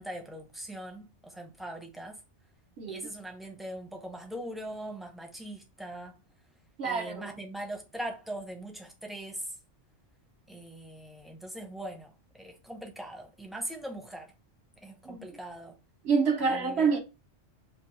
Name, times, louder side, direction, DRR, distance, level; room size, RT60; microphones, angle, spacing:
voice 1, 0.0-2.2 2.9-6.2 6.8-9.5 10.5-12.1 12.4-14.3 14.8-15.7 16.4-16.9, right 1 dB, ahead, 0.6 m, -41 dB
voice 2, 2.8-3.1 6.8-7.3 15.1-15.2 16.0-17.0, right 5 dB, 65° right, 1.0 m, -27 dB
4.4 x 2.6 x 3.0 m
omnidirectional pair, 1.2 m